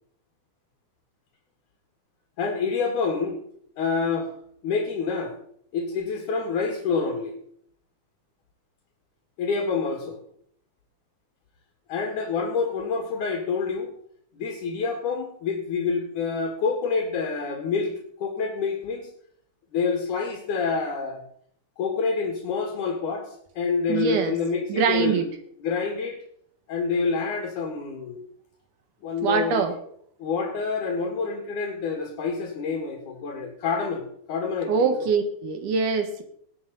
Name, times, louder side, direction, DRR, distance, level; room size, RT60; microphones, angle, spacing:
voice 1, 2.4-3.4 3.8-4.3 4.6-5.4 5.7-7.4 9.4-10.2 11.9-13.9 14.3-19.1 19.7-21.2 21.8-25.3 25.6-26.2 26.7-28.2 29.0-29.8 30.2-35.1, left 5 dB, 75° left, 2 dB, 3.4 m, -27 dB
voice 2, 23.9-24.3 24.7-25.3 29.2-29.7 34.7-36.2, right 5 dB, 80° right, 7 dB, 3.1 m, -23 dB
19.5 x 9.9 x 4.1 m, 0.65 s
omnidirectional pair, 3.5 m